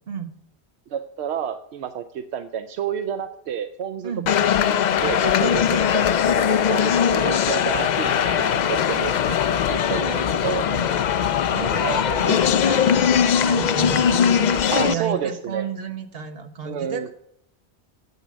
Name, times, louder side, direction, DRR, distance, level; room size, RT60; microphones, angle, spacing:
voice 1, 0.9-4.1 4.7-6.1 6.5-11.0 11.8-12.0 14.7-15.7 16.6-17.1, right 8 dB, 80° right, 9 dB, 0.9 m, -30 dB
sound 1, 4.3-14.9, left 8 dB, 55° left, 0.5 m, -20 dB
sound 2, 7.3-10.5 10.8-10.9 11.7-12.6 13.5-14.0, left 1 dB, 35° right, 3.3 m, -38 dB
voice 2, 10.0-10.9 11.5-17.1, right 7 dB, 65° right, 6 dB, 1.3 m, -33 dB
9.3 x 8.0 x 6.2 m, 0.79 s
omnidirectional pair, 1.1 m